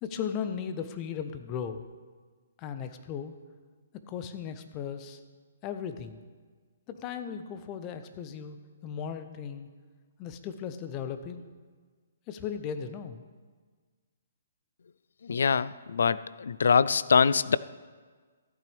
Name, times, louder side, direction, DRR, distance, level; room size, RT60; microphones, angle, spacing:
voice 1, 0.0-1.8 2.6-3.3 4.1-5.2 5.6-6.2 6.9-9.7 10.2-11.4 12.3-13.2, left 7 dB, 30° left, 9 dB, 0.7 m, -36 dB
voice 2, 15.2-17.6, left 6 dB, 75° left, 18 dB, 0.3 m, -24 dB
14.0 x 8.6 x 3.5 m, 1.5 s
hypercardioid pair, 140°, 0 cm